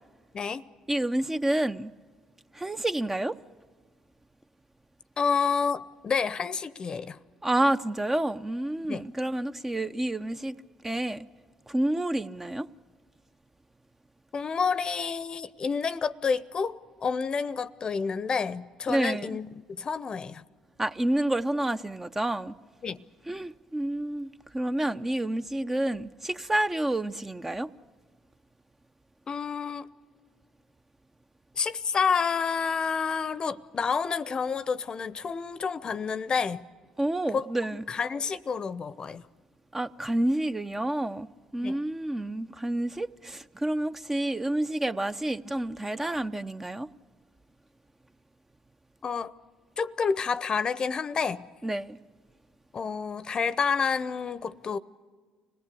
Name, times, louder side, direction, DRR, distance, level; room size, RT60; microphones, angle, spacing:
voice 1, 0.9-1.9 2.5-3.4 7.4-10.6 10.8-11.3 11.7-12.7 18.9-19.4 20.8-22.5 23.3-27.7 37.0-37.8 39.7-41.3 41.5-46.9 51.6-52.0, right 1 dB, 15° right, 0.7 m, -29 dB
voice 2, 5.2-7.2 8.8-9.1 14.3-20.4 22.8-23.0 29.3-29.9 31.6-36.6 37.3-37.5 37.9-39.2 41.6-41.8 49.0-49.3 49.8-51.4 52.7-54.8, left 5 dB, 40° left, 0.8 m, -29 dB
25.5 x 17.5 x 8.4 m
hypercardioid pair, 65°, 2 cm